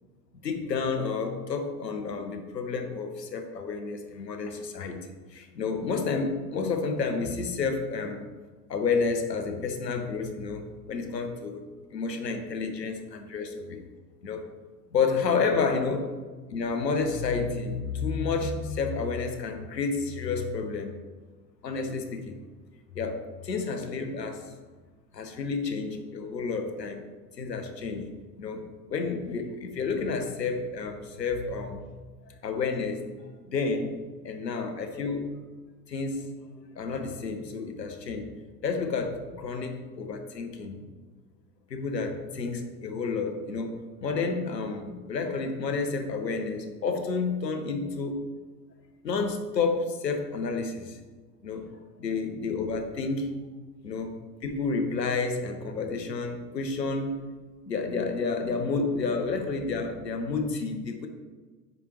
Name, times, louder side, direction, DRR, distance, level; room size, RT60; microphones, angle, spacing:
voice 1, 0.4-5.0 5.3-8.3 8.7-11.6 11.9-13.8 14.2-14.4 14.9-16.1 16.5-20.9 21.6-22.4 22.9-24.5 25.1-27.0 27.4-28.1 28.4-28.6 28.9-31.8 32.4-33.1 33.5-34.0 34.2-35.3 35.9-36.3 36.8-38.3 38.6-40.8 41.7-43.7 44.0-48.2 49.0-51.0 51.4-51.7 52.0-53.4 53.8-57.2 57.7-61.1, left 4 dB, 85° left, 5 dB, 0.9 m, -30 dB
9.4 x 3.3 x 3.0 m, 1.4 s
figure-of-eight pair, 80°, 48 cm